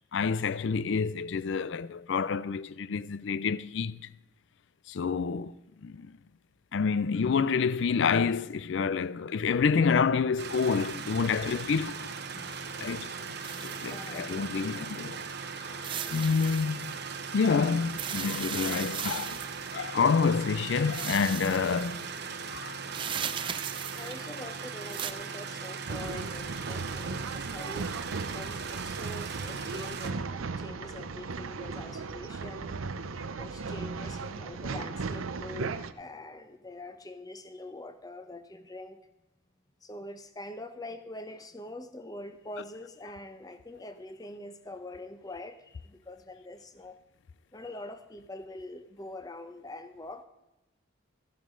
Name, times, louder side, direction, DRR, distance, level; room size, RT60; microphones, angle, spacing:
voice 1, 0.1-4.0 4.9-5.5 5.8-6.1 6.7-12.0 12.8-13.4 13.6-15.2 16.1-16.9 17.3-19.4 19.7-22.1 22.5-22.8, left 5 dB, 60° left, 0.4 m, -28 dB
sound 1, 10.4-30.1, right 5 dB, 50° right, 0.9 m, -39 dB
voice 2, 12.3-12.7 13.5-14.8 15.9-16.4 21.8-21.9 22.2-22.3 22.6-27.9 28.3-32.8 33.4-39.0 39.8-47.0 47.5-50.3, left 1 dB, 20° left, 0.7 m, -45 dB
sound 2, 13.4-14.7 15.8-17.0 17.9-19.8 20.9-22.1 22.9-24.4 24.8-25.1, right 8 dB, 25° right, 0.4 m, -37 dB
Male speech man speaking / Chatter / Rattle, 25.9-35.9, right 4 dB, 85° right, 0.7 m, -36 dB
14.0 x 11.0 x 3.8 m
head